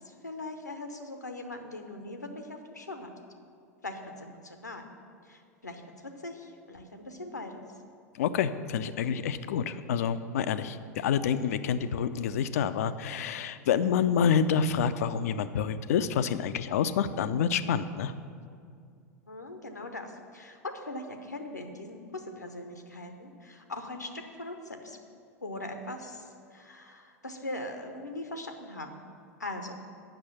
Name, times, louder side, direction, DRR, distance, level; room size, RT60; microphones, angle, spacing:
voice 1, 0.1-3.1 3.8-4.9 5.3-7.6 19.3-25.0 25.4-29.0 29.4-29.8, left 2 dB, 85° left, 6 dB, 0.8 m, -40 dB
voice 2, 8.2-18.1, left 7 dB, 60° left, 13 dB, 0.4 m, -28 dB
7.9 x 6.3 x 7.1 m, 2.3 s
figure-of-eight pair, 85°, 9 cm